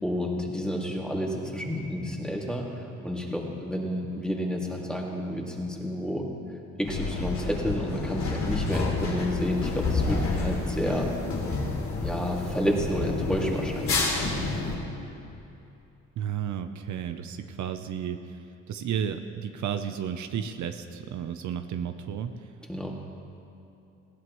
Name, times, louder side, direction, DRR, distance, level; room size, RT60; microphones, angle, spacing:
voice 1, 0.0-6.2 6.8-11.1 12.0-14.1 22.7-22.9, equal, 5° left, -2 dB, 2.3 m, -30 dB
sound 1, 6.8-14.8, left 3 dB, 70° left, 2.8 m, -29 dB
voice 2, 16.2-22.4, right 8 dB, 70° right, 8 dB, 0.7 m, -33 dB
19.0 x 15.5 x 3.1 m, 2.8 s
cardioid pair, 90°, 30 cm